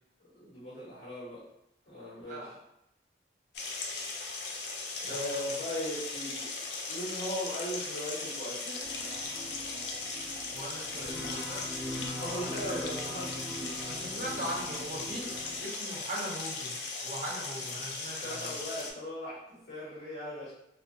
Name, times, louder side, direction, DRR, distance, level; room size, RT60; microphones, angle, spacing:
voice 1, 0.3-1.4 1.9-2.4 5.0-6.5 6.9-9.2 12.2-13.3 18.2-20.5, left 1 dB, 85° left, -10 dB, 1.0 m, -38 dB
sound 1, 3.5-18.9, left 3 dB, 65° left, 0.4 m, -38 dB
voice 2, 5.0-5.6 10.5-11.6 12.4-12.9 13.8-16.7 17.0-18.6, right 1 dB, 40° right, -2 dB, 0.5 m, -40 dB
sound 2, 8.8-15.6, equal, 10° left, 0.6 m, -42 dB
2.6 x 2.1 x 2.6 m, 0.83 s
head